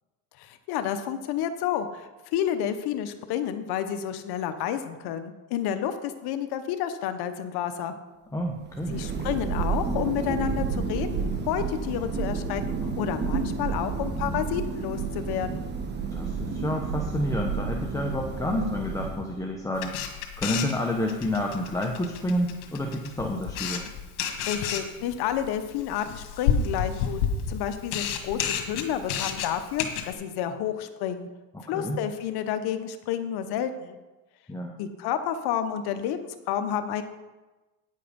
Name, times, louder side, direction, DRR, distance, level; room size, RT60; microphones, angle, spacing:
voice 1, 0.4-7.9 8.9-12.6 13.0-15.6 24.5-27.2 27.5-31.3 31.7-34.0 34.8-37.0, left 9 dB, 60° left, 9 dB, 1.0 m, -30 dB
voice 2, 8.3-9.0 16.1-23.9 31.5-32.0 34.5-34.8, left 1 dB, 10° left, 0 dB, 0.9 m, -29 dB
Thunder, 8.5-19.6, right 5 dB, 25° right, 1.2 m, -30 dB
Camera, 19.7-30.1, left 7 dB, 90° left, 1.7 m, -31 dB
9.8 x 7.5 x 5.2 m, 1.1 s
supercardioid pair, 115°, 43 cm